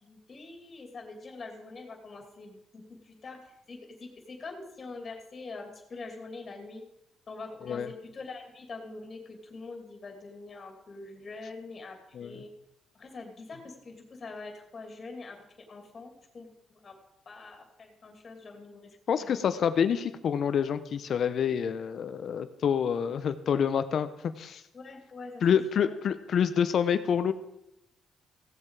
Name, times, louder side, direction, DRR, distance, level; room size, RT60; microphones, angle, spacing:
voice 1, 0.0-6.8 7.3-12.5 12.9-17.0 17.2-18.9 19.2-19.4 24.7-25.9, left 3 dB, 40° left, 3 dB, 2.9 m, -44 dB
voice 2, 19.1-24.1 24.4-24.6 25.4-27.3, left 7 dB, 60° left, 12 dB, 0.9 m, -27 dB
16.5 x 7.4 x 4.9 m, 0.83 s
cardioid pair, 90°, 0 cm